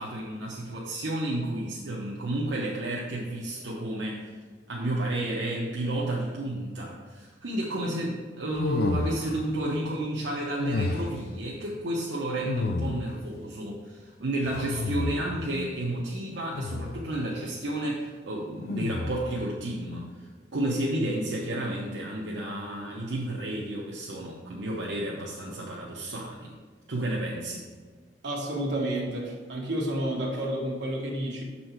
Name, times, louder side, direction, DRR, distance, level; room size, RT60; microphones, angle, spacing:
voice 1, 0.0-4.4 4.7-26.5 26.9-27.6, right 1 dB, 85° right, -4 dB, 0.8 m, -31 dB
sound 1, 8.5-9.5 10.6-11.3 12.4-13.3 14.4-15.5 16.5-17.1 18.7-19.4, left 3 dB, 55° left, 0.3 m, -31 dB
voice 2, 28.2-31.4, right 1 dB, 70° right, -1 dB, 1.3 m, -30 dB
6.5 x 4.2 x 4.4 m, 1.5 s
head